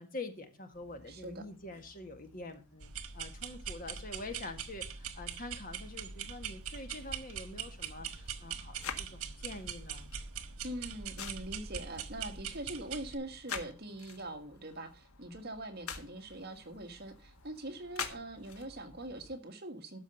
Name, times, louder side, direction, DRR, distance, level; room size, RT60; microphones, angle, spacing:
voice 1, 0.0-10.2, left 2 dB, 40° left, 6 dB, 1.8 m, -46 dB
sound 1, 0.7-19.4, left 6 dB, 85° left, 1.6 m, -49 dB
voice 2, 1.1-1.4 10.6-20.0, right 1 dB, 45° right, 5 dB, 1.7 m, -43 dB
sound 2, 2.8-13.1, right 7 dB, 85° right, 1.4 m, -42 dB
13.0 x 5.3 x 6.7 m, 0.32 s
head